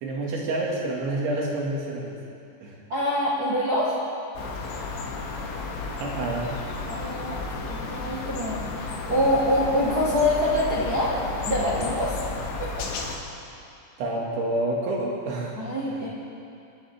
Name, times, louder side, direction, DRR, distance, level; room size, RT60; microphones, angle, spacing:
voice 1, 0.0-2.2 2.6-2.8 6.0-6.6 14.0-15.6 15.9-16.0, right 2 dB, 85° right, -3 dB, 4.6 m, -28 dB
voice 2, 2.9-3.9 6.9-12.2 12.8-12.9 15.5-16.1, left 1 dB, 60° right, -7 dB, 1.0 m, -25 dB
sound 1, 4.4-13.2, left 3 dB, 90° left, 3.9 m, -33 dB
29.5 x 10.5 x 3.6 m, 2.6 s
omnidirectional pair, 5.2 m